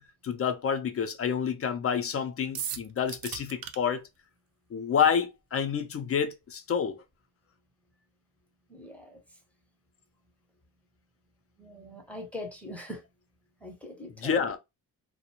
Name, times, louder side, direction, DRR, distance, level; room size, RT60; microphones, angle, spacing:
voice 1, 0.0-4.0 4.7-7.0 14.2-14.6, left 7 dB, 40° left, 0.4 m, -28 dB
sound 1, 2.5-3.8, right 9 dB, 70° right, 0.5 m, -36 dB
voice 2, 8.7-9.2 11.6-13.0 13.6-14.5, left 1 dB, 5° left, 0.7 m, -42 dB
2.4 x 2.1 x 2.8 m
cardioid pair, 125°, 37 cm